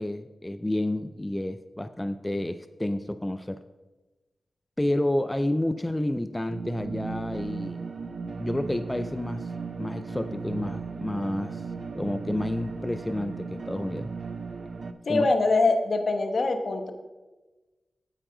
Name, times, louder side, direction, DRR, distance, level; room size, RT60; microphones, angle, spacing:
voice 1, 0.0-3.6 4.8-7.8 8.4-9.5 9.8-11.7 11.9-14.1 15.1-15.3, left 1 dB, 20° left, 11 dB, 0.4 m, -30 dB
sound 1, 6.5-14.9, right 4 dB, 65° right, 0.6 m, -36 dB
voice 2, 15.1-16.9, left 3 dB, 65° left, 7 dB, 1.0 m, -23 dB
9.0 x 8.6 x 3.9 m, 1.2 s
cardioid pair, 45°, 0 cm